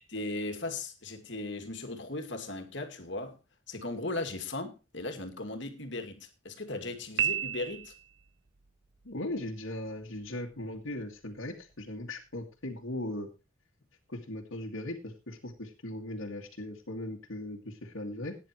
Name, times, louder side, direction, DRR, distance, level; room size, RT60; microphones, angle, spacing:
voice 1, 0.1-3.4 3.7-7.9, left 2 dB, 60° left, 2.4 m, -37 dB
Piano, 7.2-8.3, right 10 dB, 55° right, 0.8 m, -31 dB
voice 2, 9.0-13.3 14.1-18.4, left 1 dB, 85° left, 2.2 m, -38 dB
17.0 x 10.0 x 3.1 m
head